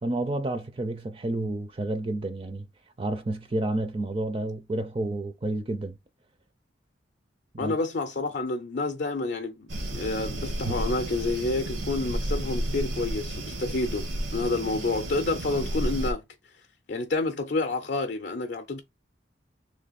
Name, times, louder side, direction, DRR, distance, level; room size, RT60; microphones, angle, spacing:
voice 1, 0.0-2.7 3.0-6.0 7.5-7.8, right 2 dB, 30° right, 0.4 m, -30 dB
voice 2, 7.6-14.1 14.3-16.2 16.9-18.8, left 3 dB, 55° left, 0.5 m, -29 dB
sound 1, 9.7-16.1, right 1 dB, 85° right, 1.0 m, -32 dB
3.3 x 3.0 x 4.0 m
head